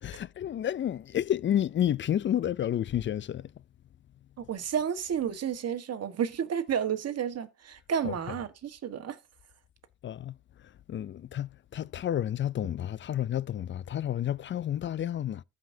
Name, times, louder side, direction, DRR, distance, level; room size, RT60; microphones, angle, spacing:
voice 1, 0.0-3.5 8.0-8.1 10.0-10.3 10.9-15.4, left 11 dB, 40° left, 0.4 m, -30 dB
voice 2, 4.4-9.2, right 8 dB, 55° right, 1.5 m, -31 dB
15.0 x 5.1 x 2.7 m
cardioid pair, 90°, 30 cm